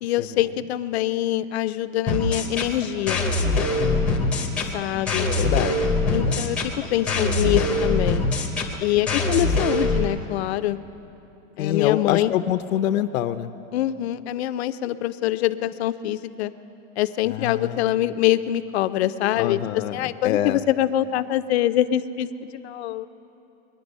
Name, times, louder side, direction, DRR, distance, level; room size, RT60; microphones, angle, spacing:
voice 1, 0.0-3.3 4.7-5.3 6.1-8.3 8.8-10.8 11.6-12.3 13.7-16.5 17.0-19.6 19.9-23.1, left 13 dB, 55° left, 13 dB, 0.5 m, -24 dB
sound 1, 2.1-10.1, left 2 dB, 5° left, 0.6 m, -23 dB
voice 2, 3.8-4.9 5.3-5.8 6.0-6.4 11.6-13.5 17.3-17.9 19.3-20.6, left 12 dB, 90° left, 10 dB, 0.7 m, -26 dB
22.5 x 10.5 x 5.3 m, 3.0 s
supercardioid pair, 175°, 39 cm